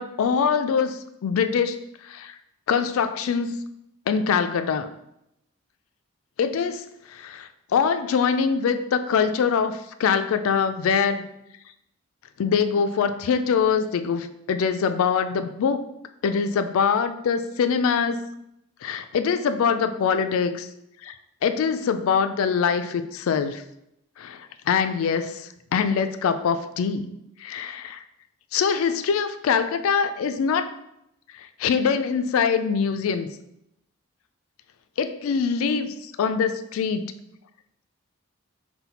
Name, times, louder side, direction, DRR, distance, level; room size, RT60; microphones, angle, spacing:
voice 1, 0.0-2.3 2.7-3.6 4.1-4.9 6.4-6.8 7.1-11.3 12.4-15.8 16.2-18.2 18.8-20.7 21.0-21.1 21.4-23.6 24.2-27.1 27.4-28.0 28.5-30.7 31.6-33.3 35.0-37.1, left 6 dB, 70° left, 10 dB, 0.3 m, -23 dB
4.1 x 2.2 x 4.1 m, 0.82 s
head